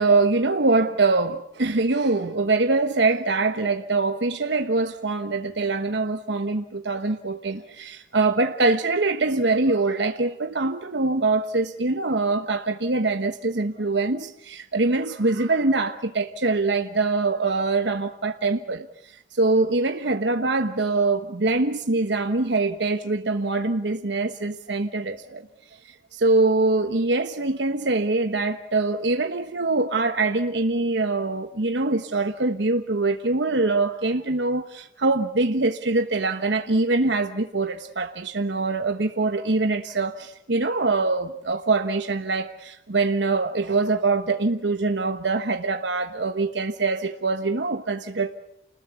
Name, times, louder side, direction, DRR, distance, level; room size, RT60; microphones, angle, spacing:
voice 1, 0.0-18.9 19.3-25.4 26.1-48.4, right 3 dB, 80° right, 1.2 m, -23 dB
30.0 x 20.0 x 8.2 m
head